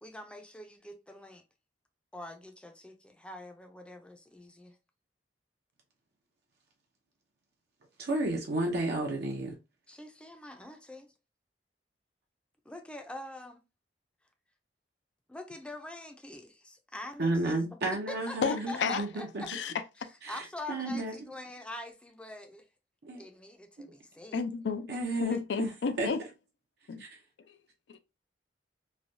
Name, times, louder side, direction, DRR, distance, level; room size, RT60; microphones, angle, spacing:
voice 1, 0.0-1.4 2.1-4.8 9.9-11.1 12.7-13.6 15.3-17.6 18.1-19.5 20.3-22.6 23.2-24.4 25.3-25.4, left 1 dB, 5° left, 0.5 m, -44 dB
voice 2, 8.0-9.6 17.2-19.4 20.2-21.1 23.0-23.2 23.8-23.9 24.9-25.7 26.0-26.1 27.0-27.1, right 2 dB, 65° right, 0.6 m, -32 dB
voice 3, 18.4-19.0 19.5-19.7 24.3-24.9 25.2-26.2 26.9-27.0 27.9-28.0, left 5 dB, 75° left, 0.4 m, -31 dB
3.2 x 2.2 x 2.6 m
head